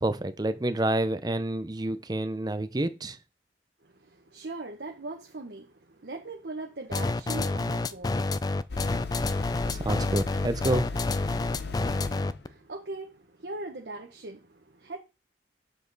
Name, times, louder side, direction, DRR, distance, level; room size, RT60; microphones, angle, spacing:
voice 1, 0.0-3.2 9.7-10.8, right 1 dB, 25° right, 0.6 m, -28 dB
voice 2, 3.8-8.6 12.4-15.0, right 2 dB, 70° right, 1.0 m, -40 dB
sound 1, 6.9-12.5, left 3 dB, 20° left, 0.3 m, -28 dB
sound 2, 8.7-12.4, left 4 dB, 65° left, 0.8 m, -36 dB
7.4 x 4.9 x 4.0 m
head